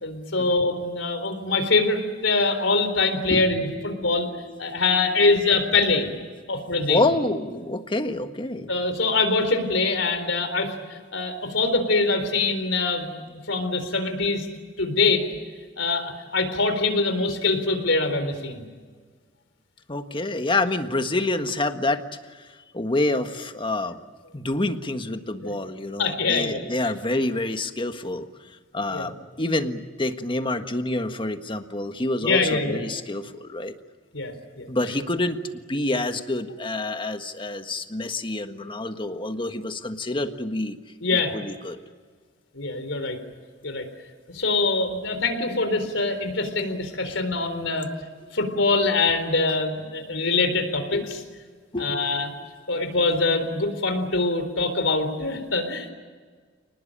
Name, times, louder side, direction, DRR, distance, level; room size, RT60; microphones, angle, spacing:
voice 1, 0.0-4.3 4.6-6.1 6.5-7.0 8.7-13.1 13.5-14.5 14.8-15.2 15.8-18.6 25.4-25.5 26.0-26.9 28.9-29.1 32.2-32.8 34.1-34.7 41.0-41.4 42.5-43.2 43.6-43.8 44.3-47.9 48.3-51.2 51.8-52.3 52.7-55.9, left 3 dB, 80° left, 8 dB, 4.0 m, -24 dB
voice 2, 3.3-5.2 6.9-8.7 19.9-22.0 22.3-22.4 22.7-24.0 24.3-28.3 28.7-33.7 34.7-35.4 35.7-40.8 41.1-41.8 50.5-50.6 50.9-51.1 51.7-52.3, left 2 dB, 25° left, 7 dB, 1.5 m, -28 dB
29.0 x 20.0 x 8.9 m, 1.5 s
head